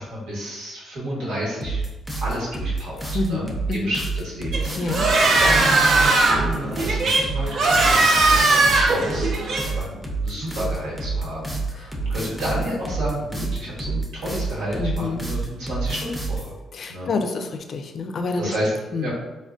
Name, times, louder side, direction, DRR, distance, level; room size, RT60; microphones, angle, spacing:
voice 1, 0.0-1.8 2.2-3.0 3.3-9.3 9.6-16.5 16.9-17.1 18.4-18.7 19.0-19.1, equal, 85° right, -6 dB, 1.2 m, -30 dB
sound 1, 1.6-16.5, right 3 dB, ahead, 0.5 m, -28 dB
voice 2, 3.1-3.9 4.8-5.1 11.8-11.9 14.8-15.2 16.7-18.5 18.9-19.1, left 3 dB, 55° left, 5 dB, 0.3 m, -27 dB
sound 2, 4.5-9.6, right 2 dB, 60° right, 0.5 m, -19 dB
3.4 x 2.1 x 2.4 m, 1.1 s
cardioid pair, 90°, 0 cm